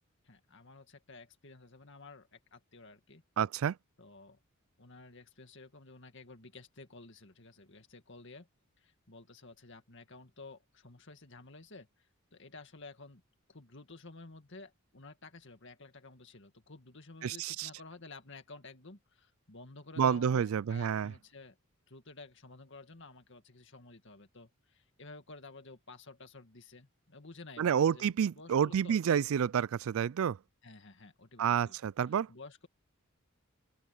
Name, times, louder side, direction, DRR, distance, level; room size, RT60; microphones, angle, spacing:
voice 1, 0.2-3.2 4.0-4.4 4.8-8.5 8.8-12.1 12.3-13.2 13.5-21.6 21.9-29.0 30.6-31.8 32.3-32.7, left 3 dB, 55° left, 2.1 m, -52 dB
voice 2, 3.4-3.8 17.2-17.7 20.0-21.1 27.6-30.4 31.4-32.3, right 8 dB, 70° right, 0.3 m, -29 dB
open air
head